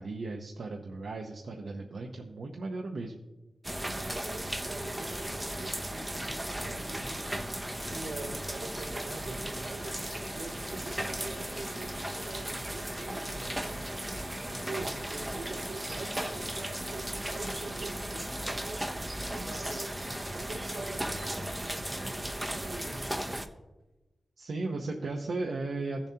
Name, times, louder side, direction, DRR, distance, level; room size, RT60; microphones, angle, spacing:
voice 1, 0.0-3.2 24.4-26.1, right 3 dB, 65° right, 1 dB, 0.8 m, -36 dB
sound 1, 3.6-23.5, right 1 dB, 10° right, 0.7 m, -36 dB
voice 2, 3.8-7.4 7.8-10.0 10.3-13.8 14.5-19.9 20.3-23.4, right 3 dB, 85° right, -6 dB, 3.5 m, -45 dB
15.5 x 7.1 x 2.8 m, 1.1 s
wide cardioid pair, 115°, 0 cm